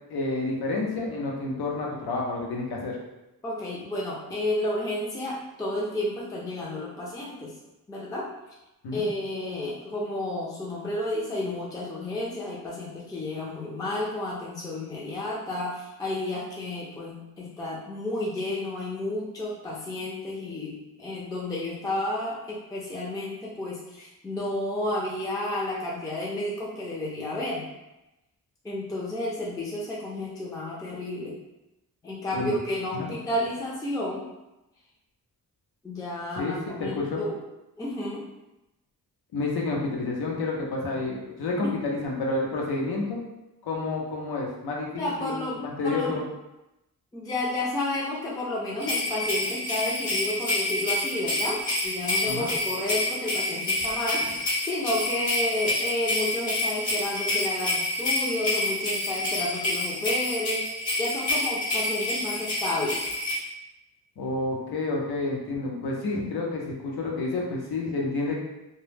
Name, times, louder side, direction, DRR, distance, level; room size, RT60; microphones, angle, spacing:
voice 1, 0.1-3.0 8.8-9.1 32.3-32.5 32.9-33.1 36.4-37.2 39.3-43.2 43.6-46.2 52.2-52.5 64.2-68.4, left 3 dB, 80° left, -2 dB, 0.7 m, -29 dB
voice 2, 3.4-7.5 7.9-8.3 8.9-27.6 28.6-31.4 32.0-34.2 35.8-37.4 37.8-38.2 41.6-41.7 45.0-46.2 47.1-63.0, left 1 dB, 10° left, -5 dB, 0.4 m, -31 dB
sound 1, 48.8-63.3, left 1 dB, 50° left, 1.0 m, -28 dB
2.2 x 2.0 x 3.2 m, 0.94 s
cardioid pair, 95°, 38 cm